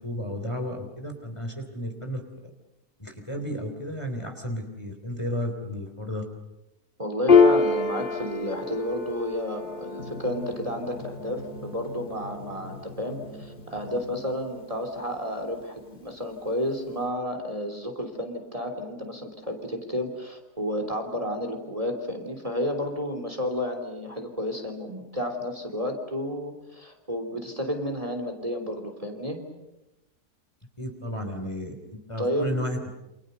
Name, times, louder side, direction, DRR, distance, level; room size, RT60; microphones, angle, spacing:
voice 1, 0.0-2.2 3.0-6.3 30.8-32.8, equal, 20° left, 4 dB, 3.3 m, -33 dB
voice 2, 7.0-29.4 32.2-32.5, equal, 20° right, 5 dB, 3.5 m, -31 dB
Piano, 7.3-14.2, left 5 dB, 35° left, 2.3 m, -26 dB
Drum, 10.0-15.1, left 1 dB, 80° left, 6.7 m, -43 dB
29.0 x 27.0 x 6.8 m, 0.95 s
omnidirectional pair, 1.7 m